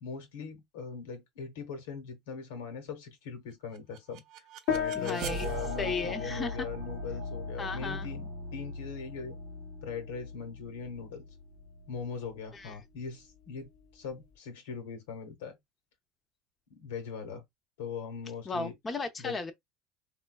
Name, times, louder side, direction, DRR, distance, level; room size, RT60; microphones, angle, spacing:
voice 1, 0.0-9.4 9.8-11.3 11.9-15.6 16.8-17.4 17.8-18.7 19.2-19.4, left 6 dB, 90° left, 1.0 m, -40 dB
sound 1, 3.7-12.7, right 1 dB, 65° right, 0.6 m, -41 dB
sound 2, 4.7-14.3, left 8 dB, 75° left, 0.7 m, -40 dB
voice 2, 4.9-5.5 5.8-6.7 7.6-8.1 12.5-12.8 18.5-19.5, left 4 dB, 25° left, 0.6 m, -35 dB
3.7 x 2.2 x 2.2 m
supercardioid pair, 100°, 0 cm